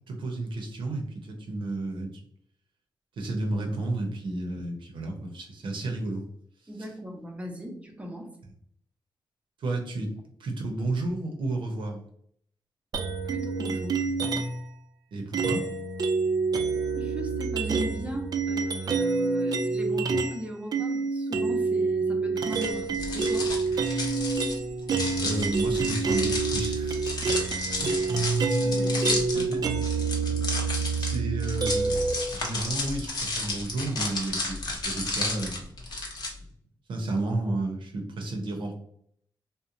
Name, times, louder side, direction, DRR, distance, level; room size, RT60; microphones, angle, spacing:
voice 1, 0.1-2.2 3.2-6.3 9.6-10.1 10.4-12.0 15.1-15.7 25.2-27.0 27.8-27.9 28.4-28.6 29.3-29.6 31.0-35.7 36.9-38.7, right 2 dB, 80° right, 2 dB, 0.7 m, -32 dB
voice 2, 6.7-8.3 13.2-14.1 16.9-23.6 28.2-29.7, equal, 15° right, 2 dB, 0.6 m, -38 dB
sound 1, 12.9-14.7 15.3-20.4 20.7-32.1, right 4 dB, 50° right, 0.4 m, -27 dB
sound 2, 22.5-36.3, left 2 dB, 55° left, 0.7 m, -33 dB
2.9 x 2.1 x 2.5 m, 0.66 s
wide cardioid pair, 110°, 8 cm